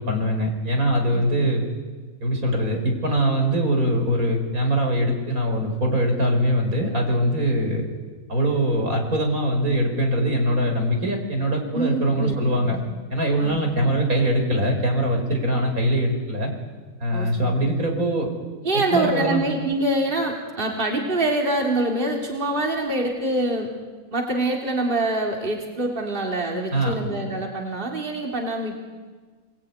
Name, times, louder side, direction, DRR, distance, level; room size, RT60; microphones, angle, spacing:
voice 1, 0.0-1.6 2.2-7.9 8.3-12.8 13.1-16.5 17.0-18.3 18.9-19.4 26.7-26.9, equal, 75° right, 3 dB, 5.4 m, -22 dB
voice 2, 11.7-12.8 13.4-13.6 17.1-17.5 18.6-23.7 24.1-28.8, right 2 dB, 35° right, 0 dB, 3.2 m, -25 dB
29.0 x 21.0 x 9.6 m, 1.4 s
omnidirectional pair, 1.5 m